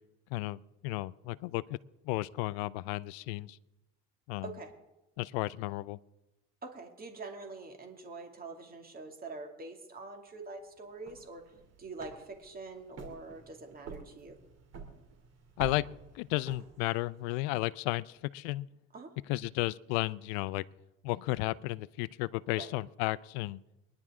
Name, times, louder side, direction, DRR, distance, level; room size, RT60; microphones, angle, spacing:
voice 1, 0.3-1.6 2.0-3.6 4.3-4.5 5.2-6.0 15.6-15.9 16.1-18.7 19.3-20.6 21.0-23.6, left 20 dB, 85° left, 19 dB, 0.5 m, -33 dB
voice 2, 6.6-11.4 11.8-14.4 18.9-19.1 22.6-22.7, right 3 dB, 30° right, 3 dB, 2.5 m, -45 dB
sound 1, 10.9-17.2, right 5 dB, 55° right, 3.0 m, -49 dB
23.5 x 10.5 x 3.7 m, 0.97 s
supercardioid pair, 100°, 30 cm